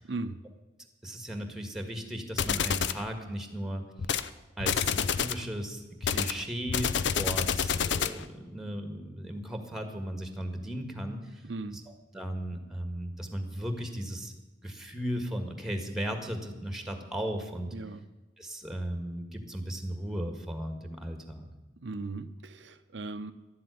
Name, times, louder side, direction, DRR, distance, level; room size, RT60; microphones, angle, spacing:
voice 1, 0.1-0.4 11.4-11.9 17.7-18.1 21.8-23.3, right 3 dB, 80° right, 9 dB, 0.7 m, -38 dB
voice 2, 1.0-3.8 4.6-11.4 11.7-14.3 14.6-17.7 18.4-21.5, equal, 5° right, 5 dB, 1.7 m, -36 dB
sound 1, 2.4-3.0 4.0-4.3 4.6-5.4 6.0-8.2, left 7 dB, 75° left, 0.6 m, -28 dB
12.0 x 7.6 x 9.5 m, 1.1 s
head